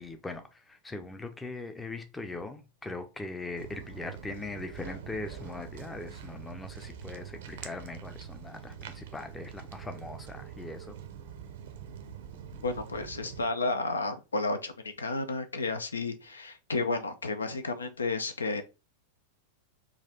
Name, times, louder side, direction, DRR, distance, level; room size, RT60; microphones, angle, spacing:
voice 1, 0.0-10.9 12.3-12.6, left 2 dB, 10° left, 0.5 m, -41 dB
Walk footsteps, 3.6-13.5, right 8 dB, 55° right, 0.5 m, -44 dB
voice 2, 12.6-18.6, left 3 dB, 75° left, 0.4 m, -32 dB
3.9 x 2.4 x 2.8 m
figure-of-eight pair, 90°, 0 cm